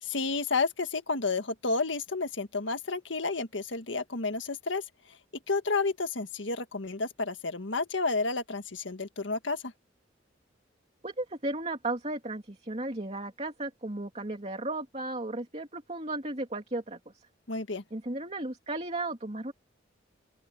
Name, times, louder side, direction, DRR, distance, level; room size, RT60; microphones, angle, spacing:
voice 1, 0.0-4.8 5.5-9.7 17.5-17.8, left 3 dB, 90° left, 1.8 m, -31 dB
voice 2, 11.0-17.0 17.9-19.5, right 2 dB, 35° right, 2.7 m, -35 dB
open air
head